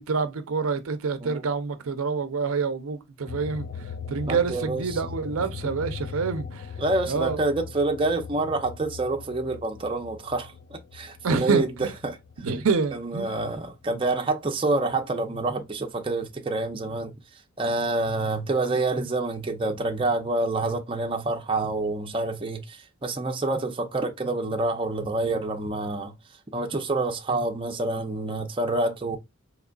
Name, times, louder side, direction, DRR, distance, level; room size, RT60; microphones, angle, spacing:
voice 1, 0.0-3.7 4.1-6.7 7.1-7.4 11.2-11.9 12.4-13.4, right 4 dB, 80° right, 0.6 m, -27 dB
sound 1, 3.3-14.2 14.6-16.0, left 6 dB, 40° left, 0.4 m, -40 dB
voice 2, 4.3-5.0 6.8-11.7 12.0-12.2 12.9-17.1 17.6-26.1 26.5-29.2, right 2 dB, 25° right, 0.6 m, -27 dB
3.9 x 2.9 x 2.3 m
head